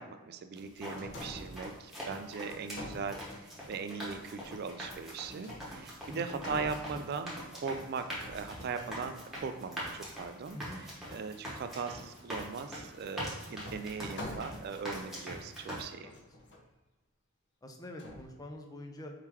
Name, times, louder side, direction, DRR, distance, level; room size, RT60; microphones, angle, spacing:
voice 1, 0.0-16.1, right 5 dB, 45° right, 8 dB, 0.3 m, -39 dB
sound 1, 0.6-15.8, equal, ahead, 1.1 m, -43 dB
sound 2, 1.0-1.7 2.6-3.7 5.4-6.0 6.3-7.4 8.2-9.1 12.6-12.7 13.6-14.8 15.5-15.6 16.0-16.6 18.0-18.2, left 1 dB, 50° left, 0.8 m, -46 dB
voice 2, 6.1-6.5 6.9-7.0 10.5-10.8 16.0-16.1 16.4-16.5 17.6-19.1, left 1 dB, 15° left, 3 dB, 0.4 m, -45 dB
4.7 x 3.7 x 2.9 m, 1.2 s
head